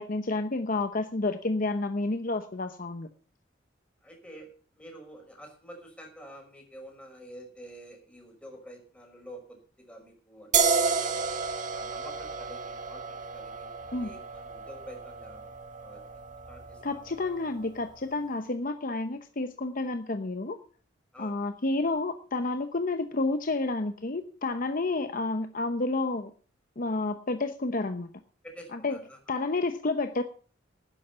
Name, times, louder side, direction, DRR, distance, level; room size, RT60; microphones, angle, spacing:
voice 1, 0.0-3.1 13.9-14.1 16.8-20.6 21.2-26.3 26.8-28.1 28.7-29.0 29.3-30.2, left 2 dB, 45° left, 8 dB, 0.8 m, -30 dB
voice 2, 4.0-11.2 11.7-15.5 15.8-16.2 16.5-17.0 21.1-21.4 28.4-29.2, right 1 dB, 5° left, 1 dB, 5.6 m, -48 dB
sound 1, 10.5-17.8, right 5 dB, 40° right, 1.7 m, -31 dB
12.0 x 10.0 x 6.9 m, 0.42 s
head